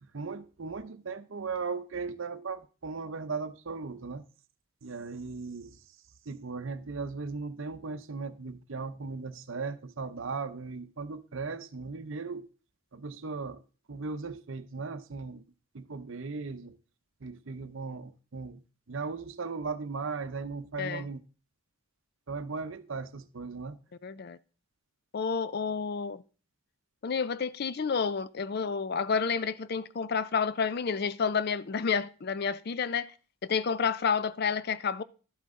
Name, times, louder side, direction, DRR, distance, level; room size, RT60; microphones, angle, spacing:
voice 1, 0.0-4.2 4.8-6.0 6.3-12.5 12.9-13.6 13.9-15.4 15.7-16.8 17.2-18.6 18.9-21.2 22.3-23.8, right 4 dB, 60° right, 0.7 m, -37 dB
voice 2, 24.0-24.4 25.1-26.2 27.0-33.1 33.5-35.0, left 6 dB, 45° left, 0.4 m, -30 dB
12.0 x 7.8 x 3.7 m
head